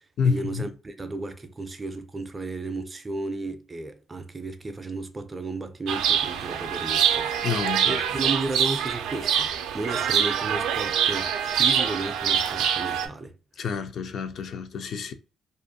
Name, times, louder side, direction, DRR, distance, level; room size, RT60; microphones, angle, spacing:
voice 1, 0.2-13.3, right 2 dB, 25° right, 0.4 m, -34 dB
Chirp tweet, 5.9-13.1, right 8 dB, 90° right, 0.3 m, -25 dB
voice 2, 7.4-7.9 13.6-15.1, left 6 dB, 65° left, 0.3 m, -28 dB
2.5 x 2.3 x 2.6 m
cardioid pair, 90°, 0 cm